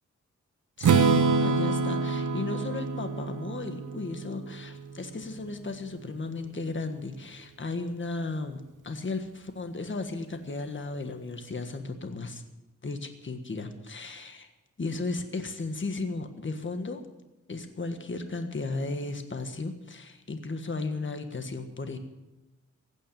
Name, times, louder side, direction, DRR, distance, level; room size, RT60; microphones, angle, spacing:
voice 1, 0.8-12.4 12.8-14.5 14.8-17.0 17.5-22.0, left 3 dB, 40° left, 7 dB, 1.6 m, -35 dB
Strum, 0.8-4.8, right 4 dB, 80° right, 0.9 m, -26 dB
16.0 x 9.1 x 8.7 m, 1.0 s
wide cardioid pair, 85°, 31 cm